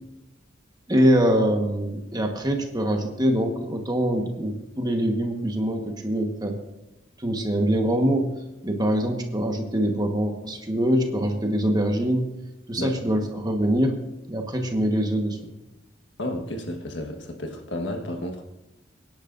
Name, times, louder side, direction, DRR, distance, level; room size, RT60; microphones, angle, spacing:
voice 1, 0.9-6.6 7.2-8.3 8.6-12.3 12.7-14.0 14.3-15.5, equal, 20° right, 3 dB, 1.4 m, -24 dB
voice 2, 16.2-18.4, left 1 dB, 75° left, 4 dB, 1.5 m, -32 dB
23.5 x 10.5 x 2.6 m, 0.95 s
head